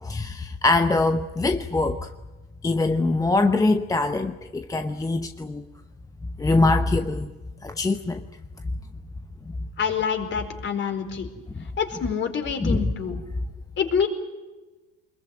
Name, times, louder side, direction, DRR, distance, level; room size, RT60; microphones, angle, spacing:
voice 1, 0.0-2.1 2.6-5.7 6.4-7.3 7.6-8.2 12.6-12.9, left 2 dB, 10° left, 0.9 m, -23 dB
voice 2, 9.8-11.3 11.8-13.2 13.8-14.1, left 7 dB, 40° left, 4.7 m, -26 dB
24.5 x 21.5 x 9.1 m
supercardioid pair, 100°, 31 cm